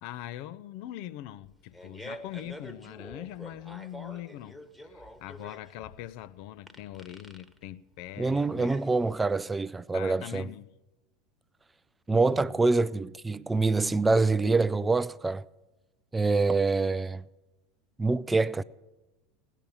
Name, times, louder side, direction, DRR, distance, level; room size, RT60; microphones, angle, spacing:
voice 1, 0.0-4.6 4.8-8.8 9.9-10.8 12.1-12.6, left 13 dB, 55° left, 0.6 m, -42 dB
Fart, 1.4-9.4, equal, 5° left, 1.3 m, -47 dB
voice 2, 8.2-10.5 12.1-15.4 16.1-17.2 18.0-18.6, right 3 dB, 15° right, 0.4 m, -25 dB
17.0 x 10.0 x 7.1 m
figure-of-eight pair, 80°, 0 cm